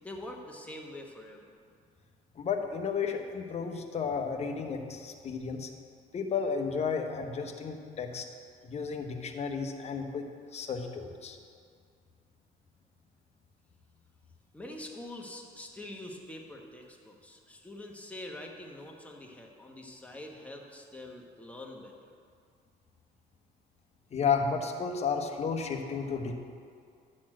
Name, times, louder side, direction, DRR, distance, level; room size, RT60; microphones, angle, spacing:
voice 1, 0.0-1.5 14.5-22.1, left 1 dB, 10° left, 0 dB, 1.2 m, -45 dB
voice 2, 2.4-5.7 6.1-8.2 8.6-10.2 10.5-11.4 24.1-26.3, left 6 dB, 40° left, 4 dB, 1.0 m, -32 dB
10.5 x 4.3 x 7.4 m, 2.2 s
cardioid pair, 110°, 17 cm